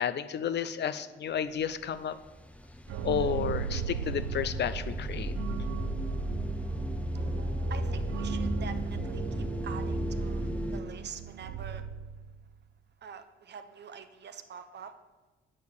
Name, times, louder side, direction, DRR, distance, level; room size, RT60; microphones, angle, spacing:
voice 1, 0.0-2.2 3.0-5.3, left 8 dB, 55° left, 13 dB, 0.5 m, -31 dB
sound 1, 1.7-2.0 2.2-10.8, equal, 5° left, 0.7 m, -34 dB
sound 2, 2.9-12.5, right 8 dB, 75° right, 0.5 m, -38 dB
voice 2, 7.7-11.9 13.0-14.9, right 7 dB, 55° right, 9 dB, 0.8 m, -45 dB
8.6 x 4.7 x 6.9 m, 1.2 s
supercardioid pair, 60°, 21 cm